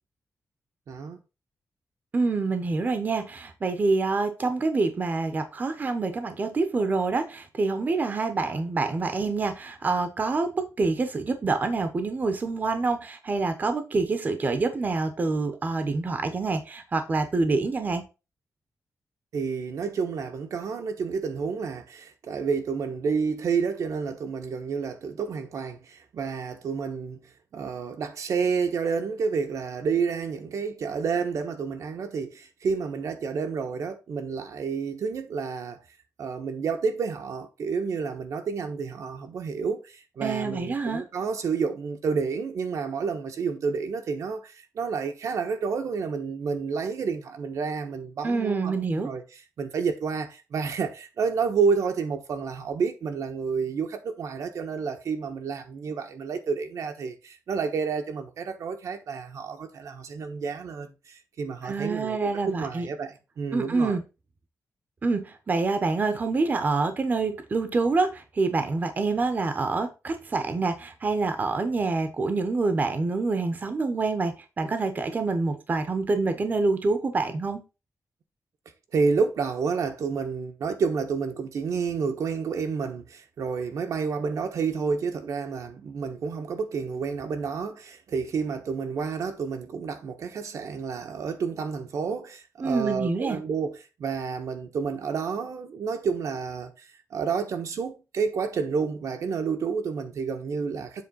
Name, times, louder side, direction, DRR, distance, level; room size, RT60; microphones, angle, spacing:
voice 1, 0.9-1.2 19.3-35.8 36.2-49.2 49.6-64.0 78.9-101.0, right 5 dB, 75° right, 1.1 m, -30 dB
voice 2, 2.1-18.0 40.2-41.0 48.2-49.1 61.6-62.9 63.5-64.0 65.0-77.6 92.6-93.4, right 3 dB, 30° right, 0.8 m, -26 dB
7.7 x 3.3 x 5.3 m
wide cardioid pair, 175°, 6 cm